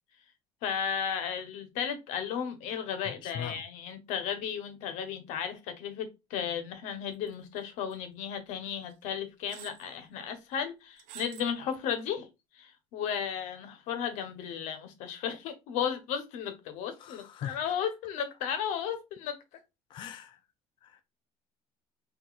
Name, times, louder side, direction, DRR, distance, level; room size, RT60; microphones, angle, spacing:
voice 1, 0.6-12.3 12.5-19.4, left 8 dB, 80° left, 1.1 m, -34 dB
voice 2, 3.0-3.6 17.0-17.7 19.9-20.4 20.8-21.0, left 9 dB, 40° left, 0.4 m, -41 dB
sound 1, 7.3-7.6 7.9-8.0 8.9-9.0 9.5-9.9 11.0-11.5 12.0-12.1, right 12 dB, 85° right, 0.7 m, -48 dB
5.8 x 2.7 x 2.4 m
cardioid pair, 150°, 12 cm